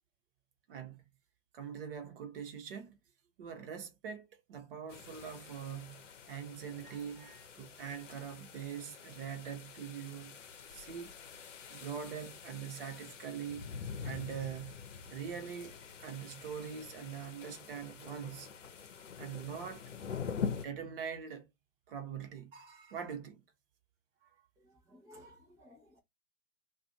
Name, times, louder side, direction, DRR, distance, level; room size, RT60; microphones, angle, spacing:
voice 1, 0.7-1.0 1.5-3.0 3.4-10.4 10.7-11.1 11.7-13.7 14.0-14.7 15.1-18.5 19.2-19.8 20.6-21.5 21.9-23.4, right 7 dB, 45° right, 1.0 m, -43 dB
sound 1, 4.9-20.7, left 6 dB, 70° left, 0.8 m, -45 dB
voice 2, 24.6-26.0, equal, 10° right, 0.6 m, -58 dB
2.5 x 2.4 x 4.0 m
figure-of-eight pair, 115°, 38 cm